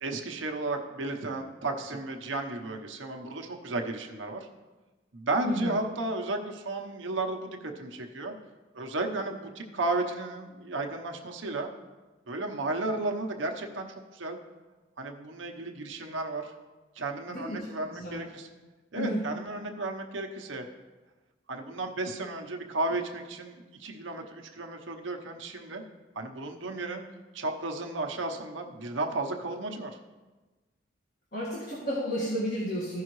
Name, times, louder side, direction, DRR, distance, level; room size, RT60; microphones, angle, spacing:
voice 1, 0.0-4.5 5.1-8.3 8.7-11.7 12.3-14.4 15.0-16.5 17.0-18.5 18.9-20.6 21.5-25.8 26.1-27.1 27.3-29.9, right 2 dB, 80° right, 3 dB, 1.0 m, -33 dB
voice 2, 5.4-5.8 17.3-17.6 17.9-18.2 18.9-19.2 31.3-33.0, equal, 50° left, -6 dB, 1.7 m, -32 dB
15.5 x 5.6 x 3.1 m, 1.2 s
head